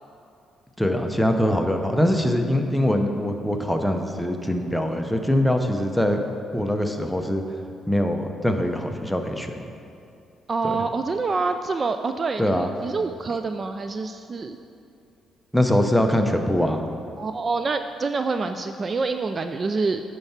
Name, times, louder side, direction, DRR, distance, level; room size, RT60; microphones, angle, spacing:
voice 1, 0.8-6.2 6.5-7.4 7.9-9.5 10.6-10.8 12.4-12.7 15.5-16.8, left 1 dB, ahead, 4 dB, 0.7 m, -23 dB
voice 2, 10.5-14.6 17.2-20.0, right 4 dB, 35° right, 8 dB, 0.3 m, -26 dB
9.0 x 4.5 x 5.7 m, 2.6 s
cardioid pair, 90°, 0 cm